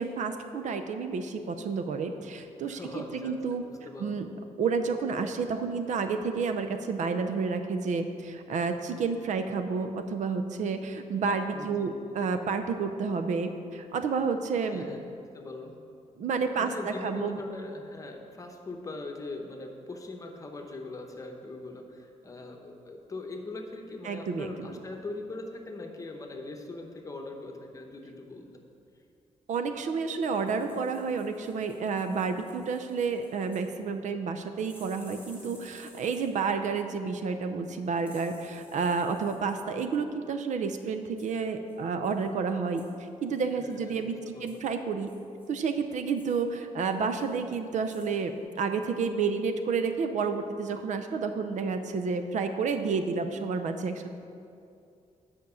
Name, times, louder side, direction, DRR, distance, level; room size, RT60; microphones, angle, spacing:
voice 1, 0.0-3.7 4.0-4.3 4.6-14.9 16.2-17.4 24.0-24.7 29.5-42.8 43.2-45.1 45.5-54.1, right 5 dB, 70° right, 8 dB, 0.6 m, -30 dB
voice 2, 2.7-4.2 11.5-12.0 14.6-15.1 15.3-15.8 16.5-28.6 43.6-44.6, left 2 dB, 25° left, 3 dB, 0.9 m, -41 dB
sound 1, 30.4-33.7 34.6-36.5 38.0-39.6 41.2-41.4 41.7-41.8 42.0-42.3 42.8-43.0 43.3-44.0 44.5-44.6 45.1-45.7 46.1-46.4 46.8-47.4 47.7-48.1 48.4-48.5, equal, 10° right, 2.6 m, -56 dB
9.3 x 5.2 x 6.9 m, 2.5 s
wide cardioid pair, 150°, 13 cm